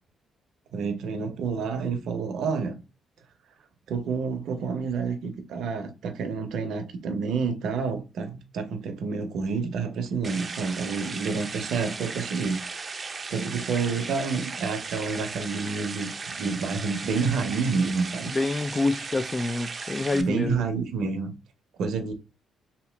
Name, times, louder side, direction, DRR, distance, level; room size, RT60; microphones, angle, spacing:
voice 1, 0.7-2.7 3.9-12.6 13.3-18.3 20.1-21.3 21.8-22.1, right 5 dB, 75° right, 0.7 m, -29 dB
sound 1, 10.2-20.2, right 4 dB, 35° right, 0.5 m, -36 dB
voice 2, 18.3-20.6, left 3 dB, 25° left, 0.3 m, -27 dB
2.9 x 2.7 x 3.3 m
cardioid pair, 90°, 0 cm